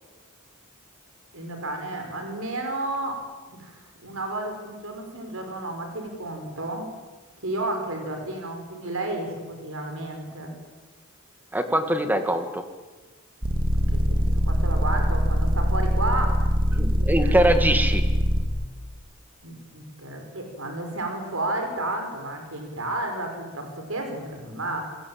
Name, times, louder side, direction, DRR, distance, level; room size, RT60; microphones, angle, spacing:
voice 1, 1.3-6.9 7.4-10.5 13.8-17.4 19.4-25.0, right 2 dB, 70° right, 4 dB, 5.4 m, -32 dB
voice 2, 11.5-12.6 16.7-18.0, right 1 dB, 10° right, 7 dB, 2.1 m, -23 dB
sound 1, 13.4-18.4, equal, 40° right, 3.4 m, -22 dB
27.0 x 20.5 x 8.9 m, 1.3 s
head